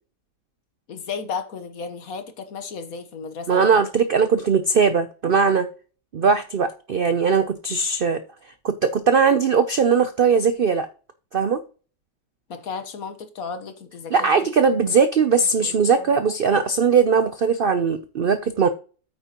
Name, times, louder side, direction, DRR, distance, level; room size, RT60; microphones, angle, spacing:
voice 1, 0.9-3.8 12.5-14.3 14.7-14.8 15.6-16.2, left 5 dB, 60° left, 1.5 m, -34 dB
voice 2, 3.5-5.7 6.1-8.2 8.6-10.9 11.3-11.6 14.1-18.7, right 5 dB, 65° right, 0.5 m, -19 dB
8.9 x 8.7 x 2.9 m
omnidirectional pair, 1.8 m